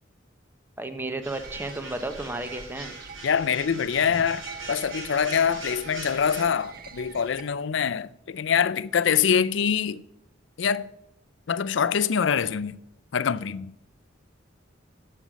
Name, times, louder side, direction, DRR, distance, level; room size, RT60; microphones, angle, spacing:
voice 1, 0.8-2.9, right 2 dB, 10° right, 0.8 m, -33 dB
sound 1, 1.2-6.4, right 2 dB, 80° right, 5.2 m, -41 dB
sound 2, 1.4-7.4, right 5 dB, 50° right, 0.9 m, -44 dB
voice 2, 3.2-10.0 10.6-10.9 11.5-12.8 13.1-13.7, left 7 dB, 65° left, 0.4 m, -24 dB
11.0 x 7.5 x 6.2 m
head